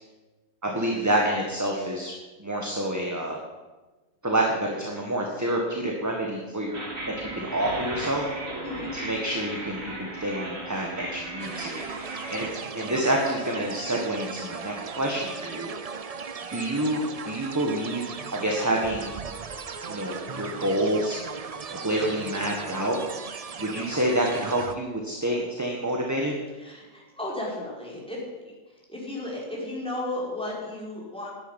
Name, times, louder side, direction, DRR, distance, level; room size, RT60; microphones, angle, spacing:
voice 1, 0.6-2.1 2.4-3.4 4.2-6.8 7.3-8.2 9.0-11.8 12.3-15.7 16.5-18.0 18.3-19.1 19.9-21.2 21.7-23.0 23.6-26.3, right 1 dB, 10° right, 0 dB, 1.6 m, -28 dB
sound 1, 6.7-12.5, right 2 dB, 65° right, 3.5 m, -36 dB
sound 2, 11.4-24.7, right 5 dB, 45° right, 0.5 m, -37 dB
voice 2, 26.6-28.2 28.7-31.3, left 1 dB, 5° left, -4 dB, 5.1 m, -34 dB
10.5 x 9.8 x 10.0 m, 1.2 s
omnidirectional pair, 1.5 m